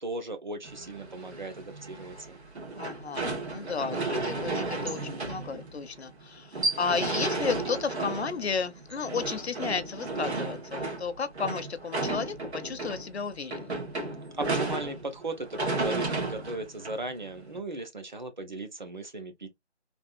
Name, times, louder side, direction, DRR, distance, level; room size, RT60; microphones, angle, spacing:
voice 1, 0.0-2.4 14.4-19.5, right 2 dB, 40° right, 0.7 m, -37 dB
sound 1, 0.6-17.6, right 3 dB, 70° right, 1.6 m, -33 dB
voice 2, 2.8-13.9, left 5 dB, 65° left, 0.6 m, -33 dB
3.4 x 2.3 x 2.4 m
figure-of-eight pair, 175°, 35 cm